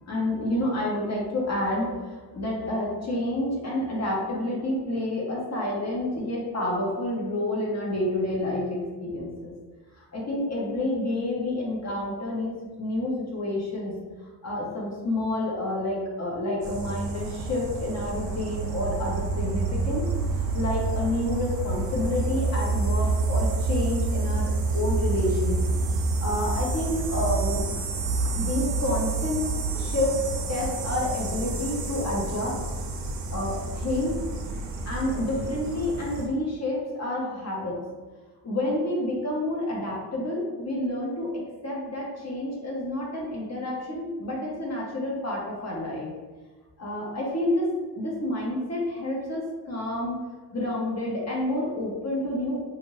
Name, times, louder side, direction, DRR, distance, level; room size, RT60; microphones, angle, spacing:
voice 1, 0.1-9.5 10.0-14.0 14.4-20.1 20.5-25.6 26.2-27.7 28.2-29.4 29.7-30.2 30.5-32.6 33.3-34.2 34.9-37.8 38.4-41.3 41.6-46.1 46.8-50.2 50.5-52.6, left 1 dB, 35° left, -3 dB, 0.9 m, -29 dB
sound 1, 16.6-36.3, right 3 dB, 75° right, 0.6 m, -28 dB
2.6 x 2.5 x 3.0 m, 1.3 s
cardioid pair, 90°, 43 cm